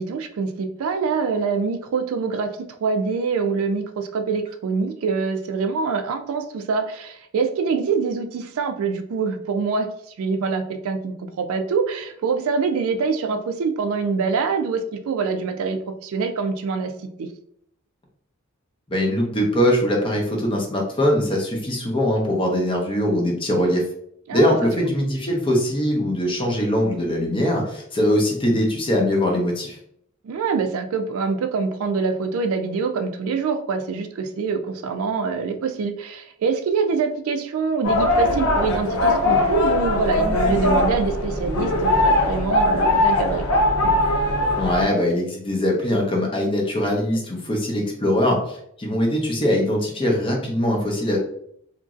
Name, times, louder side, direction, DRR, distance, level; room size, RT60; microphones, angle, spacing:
voice 1, 0.0-9.9 10.2-16.9 17.2-17.3 24.3-24.7 30.2-43.6, right 5 dB, 75° right, 7 dB, 0.3 m, -25 dB
voice 2, 18.9-23.8 24.3-29.8 44.6-51.2, left 1 dB, 25° left, 0 dB, 0.6 m, -22 dB
sound 1, 37.8-44.9, left 2 dB, 80° left, 0.7 m, -20 dB
2.9 x 2.5 x 2.4 m, 0.71 s
head